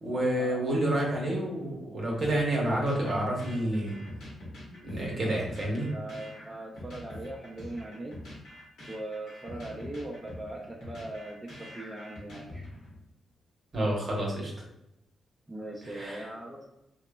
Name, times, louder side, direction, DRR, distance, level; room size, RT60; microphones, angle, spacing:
voice 1, 0.0-3.9 4.8-5.9 13.7-14.5 15.8-16.2, right 1 dB, 55° right, -2 dB, 0.9 m, -29 dB
sound 1, 2.2-13.0, left 1 dB, 80° left, 1.0 m, -45 dB
voice 2, 5.2-8.2 8.9-12.7 15.5-16.7, right 1 dB, 20° right, -3 dB, 0.5 m, -40 dB
2.9 x 2.0 x 2.2 m, 0.86 s
supercardioid pair, 50°, 0 cm